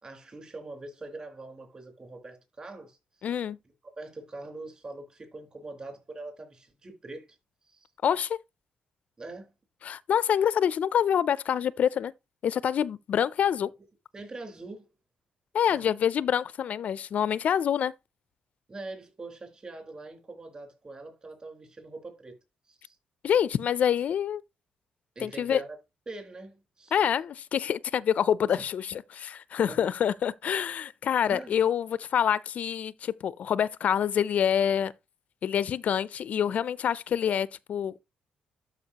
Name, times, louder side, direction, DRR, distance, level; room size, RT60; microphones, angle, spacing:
voice 1, 0.0-3.4 4.0-7.4 7.7-7.9 9.2-9.5 14.1-14.9 15.7-15.8 18.7-22.3 22.7-23.0 25.2-25.8 26.1-27.0 28.5-28.6 29.7-29.8 31.3-31.6, right 2 dB, 30° right, 3.9 m, -43 dB
voice 2, 3.2-3.6 8.0-8.4 9.8-12.1 12.4-13.7 15.5-17.9 23.2-24.4 25.2-25.6 26.9-34.9 35.4-38.0, left 9 dB, 55° left, 0.4 m, -26 dB
12.5 x 5.2 x 2.8 m
cardioid pair, 125°, 3 cm